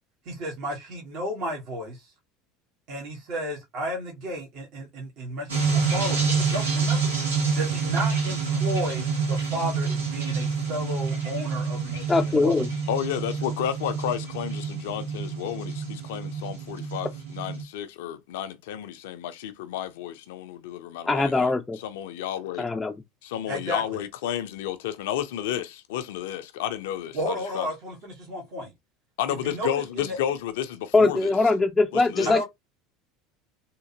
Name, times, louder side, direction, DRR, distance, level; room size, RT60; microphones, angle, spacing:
voice 1, 0.2-2.1 2.9-7.1 7.5-12.6 23.5-24.0 27.1-28.7 29.3-30.2 32.2-32.4, equal, 55° right, 1.5 m, -33 dB
sound 1, 5.5-17.6, right 5 dB, 85° right, 1.5 m, -27 dB
voice 2, 12.1-12.7 21.1-21.8 22.6-22.9 30.9-32.4, left 3 dB, 15° left, 0.5 m, -21 dB
voice 3, 12.9-21.5 21.8-22.7 23.2-27.7 29.2-31.3 31.9-32.3, left 10 dB, 70° left, 0.6 m, -32 dB
3.6 x 2.8 x 2.8 m
hypercardioid pair, 75°, 0 cm